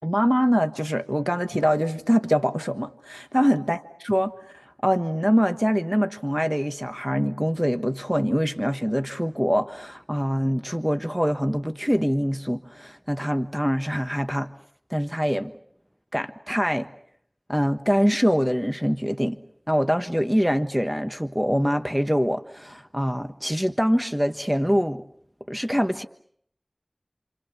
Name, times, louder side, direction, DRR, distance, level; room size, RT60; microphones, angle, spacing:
voice 1, 0.0-3.8 4.1-14.5 14.9-15.5 16.1-16.9 17.5-19.4 19.7-25.0 25.5-26.1, equal, 5° right, 1.4 m, -24 dB
29.0 x 28.0 x 7.1 m
wide cardioid pair, 45°, 0 cm